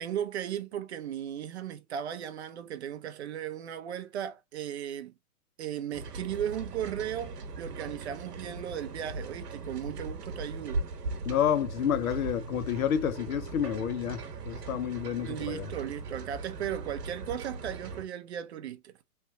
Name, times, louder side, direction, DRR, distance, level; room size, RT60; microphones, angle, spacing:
voice 1, 0.0-5.1 5.6-10.8 15.2-19.0, right 10 dB, 45° right, 0.6 m, -36 dB
sound 1, 5.9-18.0, right 3 dB, 85° right, 1.1 m, -39 dB
voice 2, 11.3-15.7, left 9 dB, 65° left, 0.8 m, -29 dB
3.3 x 3.2 x 2.6 m
hypercardioid pair, 155°, 46 cm